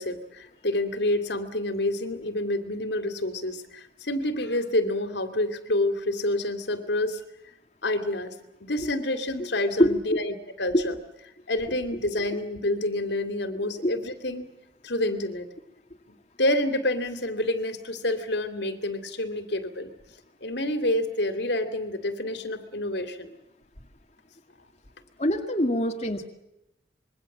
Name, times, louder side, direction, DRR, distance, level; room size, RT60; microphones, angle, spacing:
voice 1, 0.0-7.2 7.8-8.3 8.6-10.9 11.5-14.5 14.8-15.5 16.4-19.9 20.4-23.3, left 1 dB, 70° left, 9 dB, 2.8 m, -28 dB
voice 2, 25.2-26.3, left 1 dB, 35° left, 4 dB, 2.1 m, -23 dB
26.5 x 23.0 x 7.5 m, 0.90 s
head